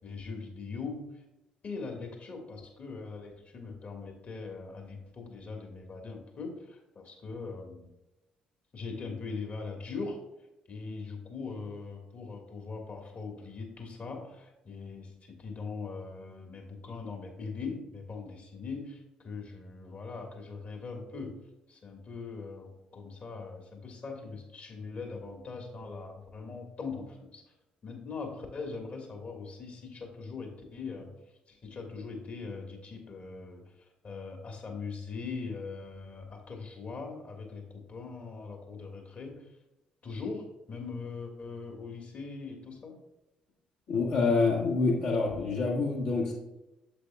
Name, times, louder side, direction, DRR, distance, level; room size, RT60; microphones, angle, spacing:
voice 1, 0.0-1.1 1.6-7.9 8.7-10.2 10.7-21.3 21.7-27.4 27.8-31.1 31.5-33.6 34.0-39.5 40.0-43.0, left 4 dB, 40° left, 2 dB, 1.6 m, -41 dB
voice 2, 43.9-46.3, left 4 dB, 60° left, -4 dB, 1.4 m, -27 dB
8.4 x 7.1 x 2.3 m, 0.95 s
figure-of-eight pair, 45°, 4 cm